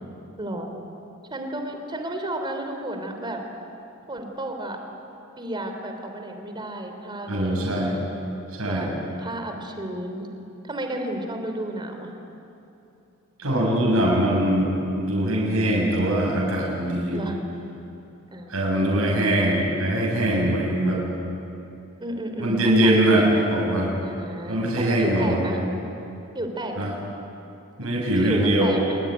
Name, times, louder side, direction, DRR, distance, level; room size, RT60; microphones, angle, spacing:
voice 1, 0.4-0.7 1.3-3.4 4.1-4.8 5.4-8.1 8.7-8.9 9.2-10.3 10.6-12.1 15.6-16.2 17.1-17.4 18.3-19.6 22.0-23.5 24.0-25.6 26.3-26.9 28.1-29.0, right 1 dB, 20° right, 4 dB, 3.3 m, -33 dB
voice 2, 7.3-8.0 8.6-8.9 13.4-17.2 18.5-21.0 22.4-23.9 24.5-25.7 26.8-26.9 27.8-28.8, right 1 dB, 80° right, -3 dB, 7.3 m, -22 dB
26.5 x 22.0 x 9.6 m, 2.9 s
head